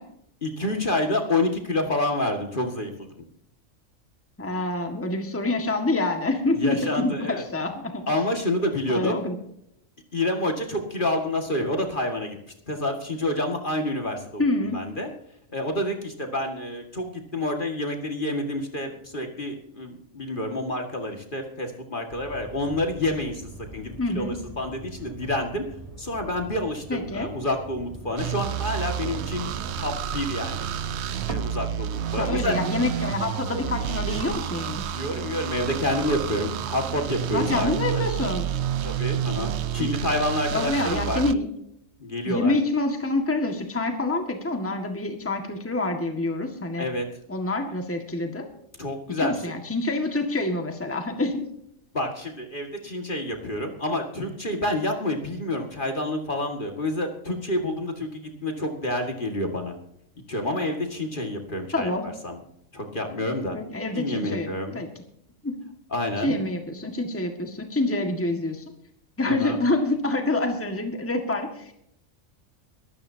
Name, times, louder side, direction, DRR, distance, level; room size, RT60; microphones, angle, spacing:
voice 1, 0.4-3.1 6.5-7.4 8.1-9.2 10.1-12.4 12.7-14.4 14.7-15.1 15.5-23.4 23.7-25.6 26.0-29.5 29.8-30.7 31.3-32.6 34.9-38.0 38.8-41.2 42.0-42.5 46.8-47.1 48.8-49.3 51.9-59.8 60.3-62.4 62.7-63.6 63.9-64.8 65.9-66.4 69.3-69.6, left 1 dB, 40° left, 3 dB, 2.1 m, -28 dB
voice 2, 4.4-8.0 8.9-9.4 14.4-14.8 24.0-24.4 26.9-27.3 32.2-34.8 37.3-38.5 39.8-39.9 40.5-41.5 42.3-46.9 47.3-48.5 49.2-51.5 61.7-62.1 63.5-64.9 65.4-65.6 66.2-68.6 69.2-71.7, left 2 dB, 10° left, 4 dB, 1.7 m, -27 dB
sound 1, 22.1-34.3, right 2 dB, 25° right, 2.1 m, -42 dB
sound 2, 28.2-41.3, right 10 dB, 60° right, 0.9 m, -30 dB
23.0 x 13.5 x 2.8 m, 0.74 s
omnidirectional pair, 1.4 m